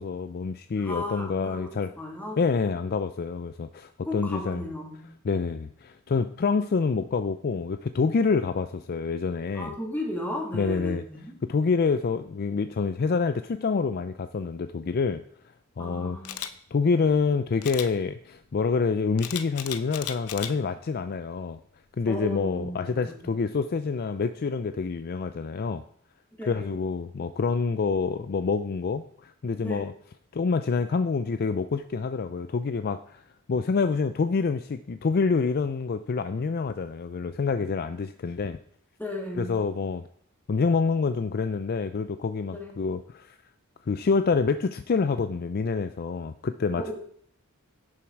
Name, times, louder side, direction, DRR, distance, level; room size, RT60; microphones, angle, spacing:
voice 1, 0.0-1.9 2.4-4.6 5.2-9.7 10.5-11.0 11.4-15.2 15.8-21.6 22.0-25.8 26.5-29.9 30.3-33.2 33.5-38.6 39.4-40.0 40.5-43.4 43.9-46.9, left 4 dB, 45° left, 11 dB, 0.4 m, -27 dB
voice 2, 0.8-2.4 4.1-5.0 9.5-11.4 15.8-16.4 22.1-23.3 26.4-26.7 29.6-29.9 39.0-39.6 42.5-42.8 46.8-46.9, left 1 dB, 10° left, -1 dB, 2.4 m, -35 dB
Camera, 16.2-16.5 17.6-17.9 19.2-20.5 21.0-21.3, left 10 dB, 85° left, 0.8 m, -35 dB
11.0 x 7.1 x 4.6 m, 0.63 s
head